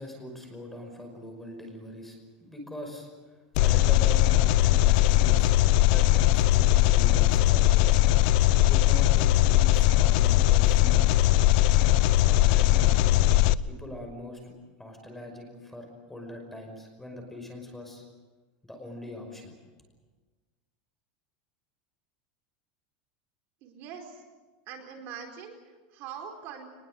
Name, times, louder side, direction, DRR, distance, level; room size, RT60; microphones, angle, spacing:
voice 1, 0.0-3.1 3.5-5.5 5.8-8.0 8.7-11.0 12.2-13.2 13.7-14.5 14.8-18.0 18.6-19.6, left 1 dB, 5° left, 3 dB, 5.6 m, -42 dB
Engine, 3.6-13.5, left 14 dB, 60° left, 0.7 m, -20 dB
voice 2, 23.6-24.2 24.7-26.7, right 7 dB, 50° right, 3 dB, 4.5 m, -43 dB
23.5 x 21.0 x 7.9 m, 1.3 s
supercardioid pair, 150°, 5 cm